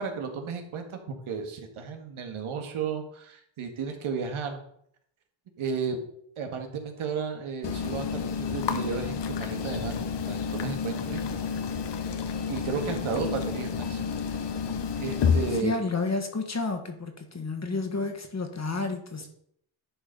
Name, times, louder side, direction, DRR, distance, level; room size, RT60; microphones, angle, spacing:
voice 1, 0.0-4.6 5.6-6.0 6.4-11.4 12.5-14.0 15.0-15.8, right 5 dB, 75° right, 4 dB, 1.8 m, -33 dB
sound 1, 7.6-15.6, left 6 dB, 55° left, 0.9 m, -30 dB
voice 2, 15.6-19.3, left 3 dB, 30° left, 5 dB, 1.7 m, -30 dB
11.0 x 4.4 x 5.4 m, 0.69 s
cardioid pair, 85°, 49 cm